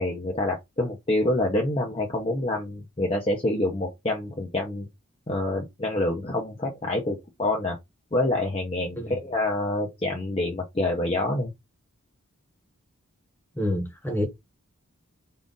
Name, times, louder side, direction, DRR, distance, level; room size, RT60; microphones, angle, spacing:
voice 1, 0.0-4.9 5.3-7.8 8.1-11.5, left 1 dB, 25° left, 0.6 m, -27 dB
voice 2, 13.5-14.3, left 1 dB, 10° left, 1.0 m, -28 dB
3.8 x 2.4 x 3.8 m
head